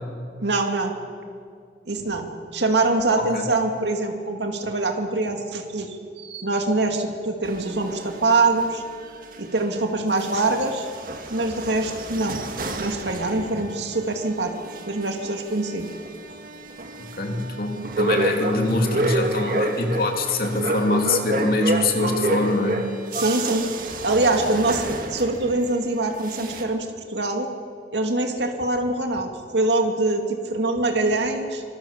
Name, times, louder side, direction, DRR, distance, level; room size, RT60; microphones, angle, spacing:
voice 1, 0.4-0.9 1.8-8.8 9.4-10.9 11.3-12.4 12.8-14.5 14.9-15.9 23.1-27.5 27.9-31.6, right 2 dB, 80° right, 3 dB, 2.3 m, -24 dB
sound 1, 7.4-9.8 10.1-25.8 26.1-26.6, right 1 dB, 50° right, 2.0 m, -29 dB
voice 2, 17.1-22.9, left 2 dB, 55° left, 3 dB, 3.0 m, -24 dB
26.0 x 22.0 x 7.3 m, 2.2 s
head